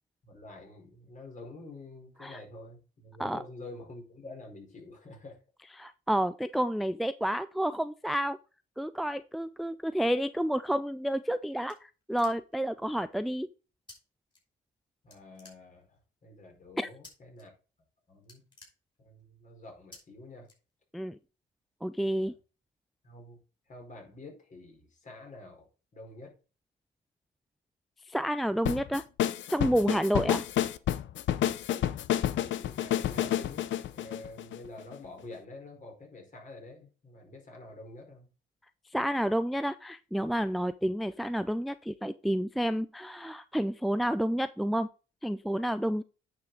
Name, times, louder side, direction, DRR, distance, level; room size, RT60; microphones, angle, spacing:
voice 1, 0.2-5.4 15.0-16.0 16.2-17.5 18.1-18.4 19.0-20.5 22.1-22.3 23.0-23.4 23.7-25.7 25.9-26.3 32.6-38.3, left 2 dB, 40° left, 1 dB, 4.4 m, -48 dB
voice 2, 5.8-8.4 8.8-11.8 12.1-13.5 16.8-16.9 20.9-21.2 21.8-22.3 28.1-29.0 29.5-30.5 38.9-44.9 45.2-46.0, equal, ahead, 13 dB, 0.4 m, -30 dB
sound 1, 11.0-12.7 13.9-14.0 14.3-14.8 15.1-16.1 17.0-17.4 17.8-17.9 18.2-19.3 19.9-20.0 20.4-21.1, left 2 dB, 25° left, 5.5 m, -54 dB
sound 2, 28.7-35.0, left 11 dB, 70° left, 0.7 m, -29 dB
9.4 x 5.8 x 3.9 m, 0.34 s
cardioid pair, 90°, 20 cm